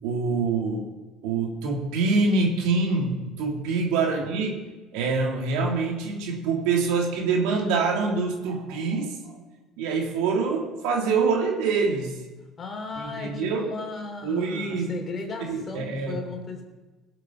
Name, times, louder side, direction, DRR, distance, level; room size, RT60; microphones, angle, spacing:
voice 1, 0.0-0.9 1.2-4.6 4.9-9.3 9.8-12.2 13.0-13.7 14.2-14.9 15.5-16.2, right 4 dB, 80° right, 1 dB, 2.6 m, -25 dB
voice 2, 12.6-16.6, left 4 dB, 40° left, 3 dB, 3.4 m, -36 dB
17.5 x 8.0 x 5.9 m, 1.2 s
supercardioid pair, 90°, 0 cm